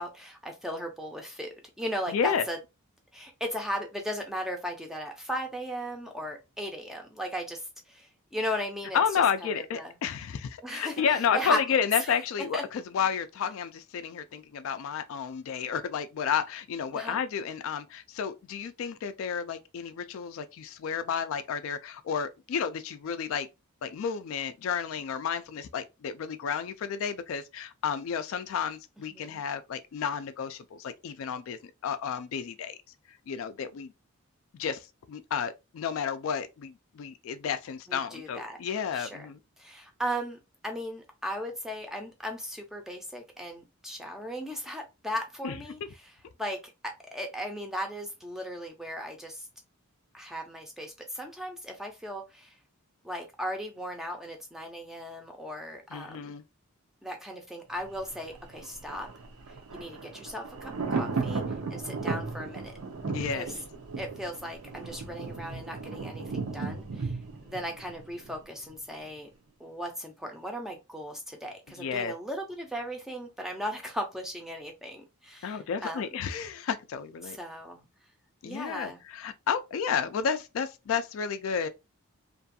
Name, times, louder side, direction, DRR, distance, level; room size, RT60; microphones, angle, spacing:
voice 1, 0.0-2.6 3.1-9.0 9.5-9.9 10.6-11.0 11.3-11.8 12.1-12.2 12.5-12.6 16.9-17.2 29.1-29.4 37.9-38.6 38.9-39.3 39.6-46.1 46.4-49.5 50.1-52.5 53.0-56.4 57.0-59.1 59.7-62.7 63.3-63.5 64.0-69.3 69.6-76.1 77.2-77.9 78.4-79.0, equal, ahead, 0.5 m, -37 dB
voice 2, 2.1-2.4 8.9-23.5 23.8-32.8 33.3-33.9 34.5-39.4 45.4-45.6 55.9-56.4 63.1-63.5 71.8-72.1 75.4-77.4 78.4-81.7, left 7 dB, 65° left, 0.3 m, -31 dB
Thunder, 57.8-68.7 69.0-69.1, right 4 dB, 75° right, 0.7 m, -36 dB
2.5 x 2.3 x 2.6 m
head